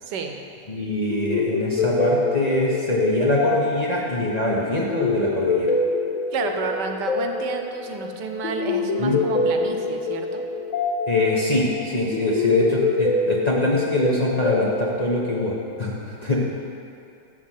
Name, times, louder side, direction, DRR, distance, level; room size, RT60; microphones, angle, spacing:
voice 1, 0.0-0.4 6.3-10.5, right 5 dB, 75° right, 5 dB, 1.3 m, -30 dB
voice 2, 0.7-5.7 9.0-9.2 11.1-16.4, left 1 dB, 30° left, -5 dB, 0.9 m, -23 dB
sound 1, 1.1-15.9, left 3 dB, 55° left, 1.1 m, -26 dB
12.0 x 4.4 x 7.4 m, 2.6 s
omnidirectional pair, 1.9 m